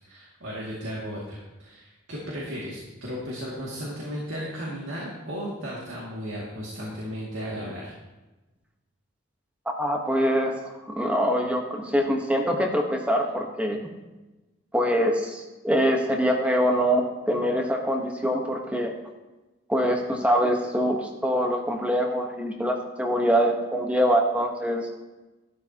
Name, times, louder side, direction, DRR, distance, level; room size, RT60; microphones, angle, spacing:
voice 1, 0.0-7.9, equal, 60° right, -5 dB, 2.3 m, -35 dB
voice 2, 9.8-13.8 14.7-18.9 19.7-24.9, equal, 5° right, 2 dB, 1.1 m, -24 dB
12.5 x 12.5 x 2.9 m, 1.1 s
head